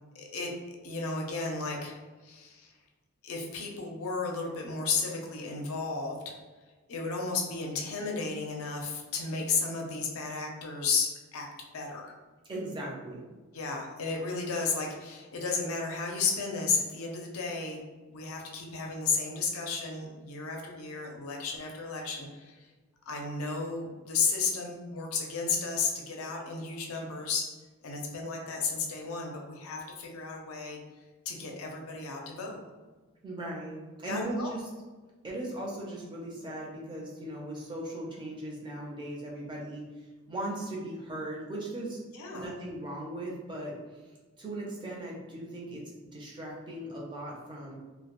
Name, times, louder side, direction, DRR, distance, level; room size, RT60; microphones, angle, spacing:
voice 1, 0.1-2.7 3.2-6.3 6.9-11.5 11.7-12.2 13.5-17.8 18.1-22.7 23.1-27.5 27.8-30.8 31.3-32.6 34.1-34.5 42.1-42.5, left 4 dB, 70° left, 1 dB, 0.5 m, -33 dB
voice 2, 12.5-13.3 33.2-34.6 35.2-42.0 42.3-47.8, right 1 dB, 20° right, -3 dB, 0.4 m, -38 dB
2.1 x 2.0 x 2.9 m, 1.3 s
head